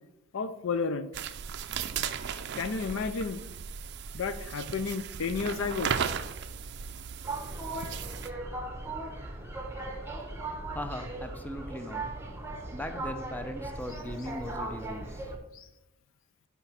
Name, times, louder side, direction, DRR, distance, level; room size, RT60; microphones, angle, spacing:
voice 1, 0.3-1.1 2.5-3.5 4.2-5.9 15.5-15.7, left 5 dB, 60° left, 11 dB, 0.4 m, -32 dB
sound 1, 1.1-8.3, right 7 dB, 50° right, 0.4 m, -36 dB
sound 2, 7.2-15.4, right 2 dB, 10° right, 0.9 m, -38 dB
voice 2, 10.7-12.0 12.7-15.3, left 1 dB, 10° left, 6 dB, 0.6 m, -39 dB
8.9 x 3.5 x 5.7 m, 0.88 s
head